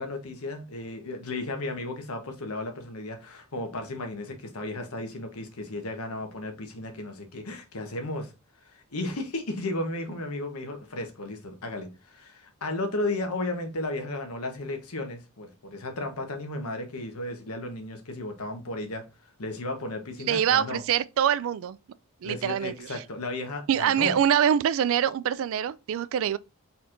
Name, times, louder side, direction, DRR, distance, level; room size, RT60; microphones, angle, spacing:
voice 1, 0.0-8.3 8.7-19.0 19.4-20.8 22.2-24.2, left 2 dB, 80° left, 1.1 m, -34 dB
voice 2, 20.3-21.8 22.2-22.9 23.7-26.4, right 9 dB, 65° right, 0.3 m, -24 dB
4.4 x 4.1 x 2.5 m
head